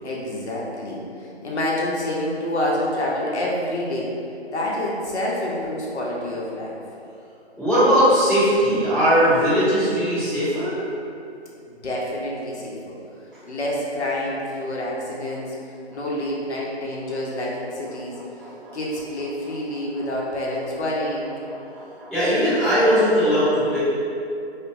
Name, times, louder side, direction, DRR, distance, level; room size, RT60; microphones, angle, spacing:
voice 1, 0.0-4.1 4.5-6.8 11.8-12.9 13.5-15.5 15.9-18.2 18.7-21.3, left 1 dB, 85° left, -4 dB, 0.7 m, -27 dB
voice 2, 7.6-10.8 15.9-16.0 18.4-18.8 21.7-23.8, equal, 5° left, -24 dB, 1.2 m, -19 dB
2.7 x 2.1 x 2.8 m, 2.7 s
figure-of-eight pair, 160°, 33 cm